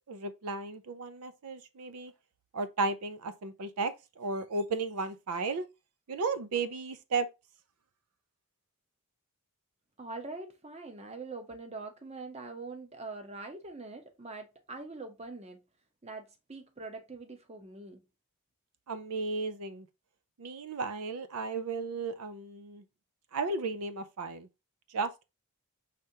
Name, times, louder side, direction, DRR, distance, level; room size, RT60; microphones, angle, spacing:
voice 1, 0.1-2.1 2.5-5.6 6.1-7.3 18.9-19.9 20.4-22.8 23.3-24.5 24.9-25.2, right 3 dB, 80° right, 0.5 m, -34 dB
voice 2, 10.0-15.6 16.0-18.0, right 3 dB, 30° right, 0.8 m, -43 dB
5.0 x 3.4 x 2.7 m
head